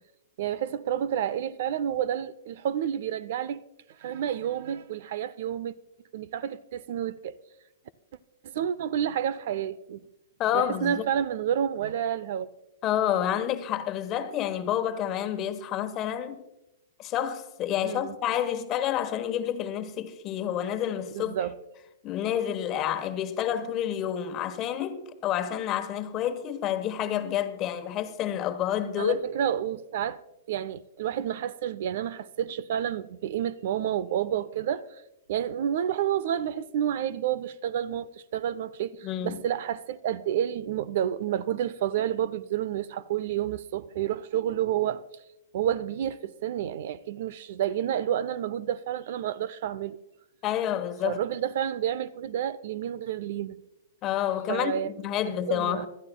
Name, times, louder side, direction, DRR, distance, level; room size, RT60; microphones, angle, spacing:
voice 1, 0.4-3.6 4.0-5.7 6.1-7.3 8.4-10.0 10.5-12.5 17.8-18.2 21.1-21.5 29.0-30.2 30.5-34.9 35.3-45.0 45.5-50.0 51.0-53.6 54.5-54.9 55.5-55.9, right 10 dB, 60° right, 0.5 m, -29 dB
voice 2, 10.4-11.1 12.8-16.4 17.0-21.3 22.0-29.2 39.0-39.4 50.4-51.2 54.0-55.9, left 10 dB, 35° left, 1.1 m, -29 dB
25.0 x 13.0 x 2.3 m
hypercardioid pair, 120°, 0 cm